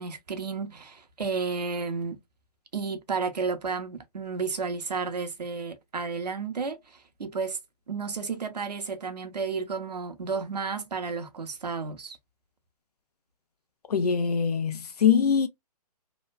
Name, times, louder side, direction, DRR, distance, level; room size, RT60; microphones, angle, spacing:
voice 1, 0.0-2.2 2.7-7.6 7.9-12.2, right 5 dB, 85° right, 0.8 m, -32 dB
voice 2, 13.9-15.5, left 7 dB, 70° left, 0.8 m, -23 dB
3.1 x 2.2 x 2.3 m
hypercardioid pair, 140°, 20 cm